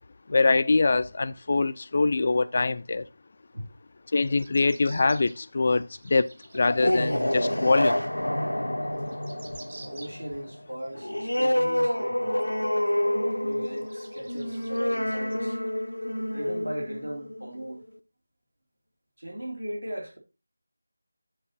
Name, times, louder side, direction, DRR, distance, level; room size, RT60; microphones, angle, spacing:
voice 1, 0.3-3.1 4.1-8.0, left 3 dB, 40° left, 0.4 m, -24 dB
sound 1, 4.1-7.2 7.7-7.8 8.6-8.7 8.8-10.4 10.8-11.7 12.3-12.4 12.9-13.0 13.5-15.9 16.4-16.5, right 3 dB, 45° right, 1.6 m, -51 dB
sound 2, 6.5-17.8, left 1 dB, 85° left, 0.9 m, -28 dB
voice 2, 9.8-12.5 13.4-15.6 16.3-17.8 19.2-20.2, right 1 dB, 85° right, 2.8 m, -38 dB
9.7 x 4.5 x 4.2 m
figure-of-eight pair, 165°, 0 cm